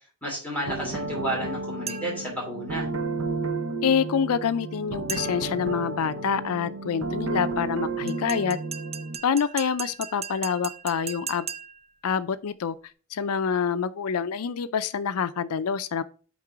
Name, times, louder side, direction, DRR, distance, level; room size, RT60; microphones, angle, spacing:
voice 1, 0.2-2.9, right 1 dB, 5° left, 2.7 m, -31 dB
sound 1, 0.7-9.2, right 3 dB, 65° right, 0.9 m, -32 dB
sound 2, 1.9-2.3 5.1-5.6 8.1-11.9, right 7 dB, 30° right, 0.5 m, -38 dB
voice 2, 3.8-8.6 9.2-11.5 12.0-12.8 13.1-16.0, left 7 dB, 75° left, 0.4 m, -26 dB
8.7 x 3.7 x 4.6 m
head